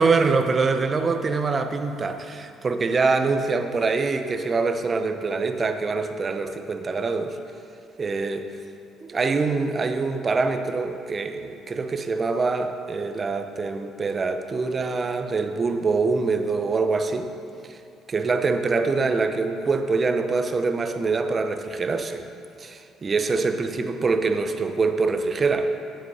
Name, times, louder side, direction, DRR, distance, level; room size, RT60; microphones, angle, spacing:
voice 1, 0.0-7.4 8.0-8.5 9.0-17.3 17.6-17.8 18.1-22.2 22.6-25.7, right 4 dB, 35° right, 8 dB, 0.7 m, -24 dB
9.8 x 8.0 x 4.2 m, 2.6 s
supercardioid pair, 65°, 0 cm